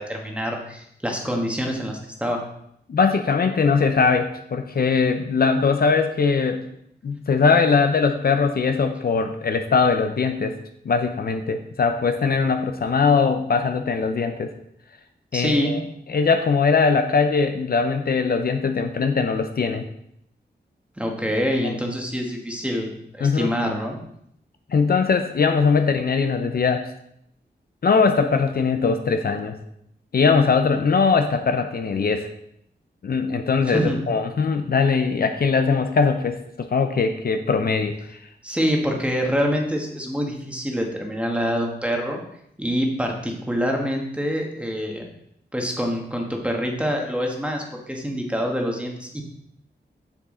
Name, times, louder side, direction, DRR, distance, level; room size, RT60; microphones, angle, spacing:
voice 1, 0.0-2.4 15.3-15.7 21.0-24.0 33.7-34.0 38.4-42.2 42.6-45.0 45.5-49.2, equal, 5° right, 1 dB, 1.3 m, -25 dB
voice 2, 2.9-6.6 7.0-10.6 10.8-14.5 15.3-15.8 16.1-19.8 21.6-21.8 23.2-23.5 24.7-26.9 27.8-29.5 30.1-32.3 33.0-38.2, left 5 dB, 55° left, 7 dB, 0.6 m, -21 dB
7.2 x 7.1 x 3.7 m, 0.73 s
wide cardioid pair, 135°, 18 cm